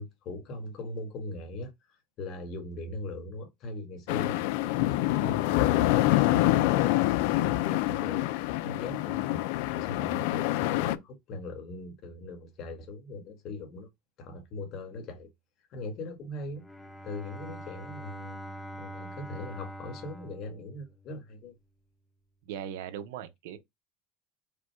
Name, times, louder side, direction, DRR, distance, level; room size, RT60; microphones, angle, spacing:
voice 1, 0.0-7.0 7.3-9.4 9.8-13.9 14.2-15.3 15.7-16.6 17.0-18.4 18.8-21.5, left 2 dB, 50° left, 1.5 m, -40 dB
sound 1, 4.1-11.0, left 16 dB, 75° left, 0.4 m, -26 dB
Bowed string instrument, 16.5-21.4, equal, 10° left, 1.0 m, -44 dB
voice 2, 22.4-23.6, right 9 dB, 85° right, 0.8 m, -39 dB
5.1 x 2.3 x 4.5 m
supercardioid pair, 130°, 0 cm